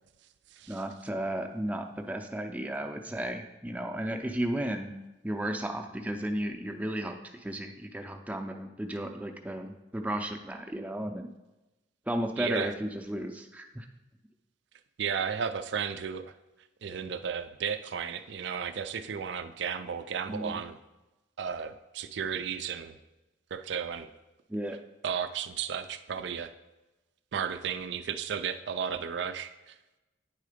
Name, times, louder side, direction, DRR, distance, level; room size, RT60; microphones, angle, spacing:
voice 1, 0.7-4.9 5.2-11.3 12.1-13.9 20.3-20.6 24.5-24.8, right 1 dB, 10° right, 3 dB, 0.5 m, -34 dB
voice 2, 12.4-12.7 15.0-16.3 16.8-20.8 21.4-23.0 23.5-24.1 25.0-26.5 27.3-29.7, right 7 dB, 65° right, 10 dB, 0.4 m, -34 dB
9.3 x 3.7 x 5.0 m, 1.0 s
head